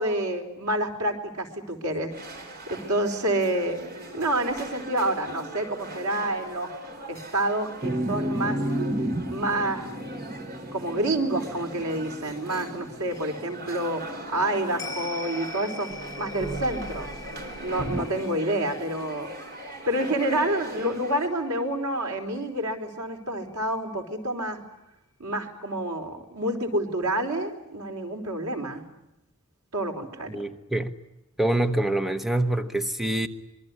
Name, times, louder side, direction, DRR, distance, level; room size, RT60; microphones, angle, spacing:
voice 1, 0.0-2.4 2.7-3.8 4.1-6.7 7.1-8.6 9.3-9.9 10.7-15.9 16.2-17.1 17.6-19.3 19.9-24.6 25.2-28.8 29.7-30.3, right 1 dB, 85° right, 4.3 m, -28 dB
sound 1, 2.1-21.3, right 1 dB, 45° right, 4.3 m, -41 dB
sound 2, 7.8-15.3 15.9-18.0, right 1 dB, 25° right, 1.3 m, -33 dB
sound 3, 14.8-23.4 23.7-23.8, left 4 dB, 15° left, 5.9 m, -44 dB
voice 2, 30.3-31.0 31.4-33.3, right 1 dB, ahead, 1.0 m, -25 dB
26.0 x 22.5 x 9.8 m
head